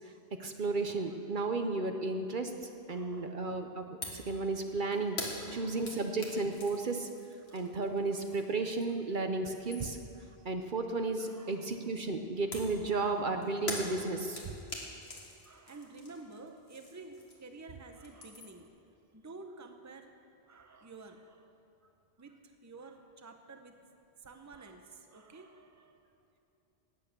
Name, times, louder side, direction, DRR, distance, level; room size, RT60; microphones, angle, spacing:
voice 1, 0.4-2.5 2.9-5.2 5.5-7.1 7.5-10.0 10.4-14.5, right 3 dB, 55° right, 5 dB, 0.9 m, -33 dB
voice 2, 2.9-3.4 5.3-6.1 7.5-7.7 8.1-8.2 11.2-11.8 12.9-13.3 15.4-18.7 19.1-20.1 20.5-21.5 22.2-23.8 24.2-26.0, right 3 dB, 20° right, 5 dB, 0.8 m, -51 dB
sound 1, 4.0-4.3 4.6-9.1 9.4-10.2 12.5-17.6 17.9-18.7, left 2 dB, 80° left, 2.1 m, -44 dB
18.0 x 8.4 x 6.7 m, 2.7 s
omnidirectional pair, 1.1 m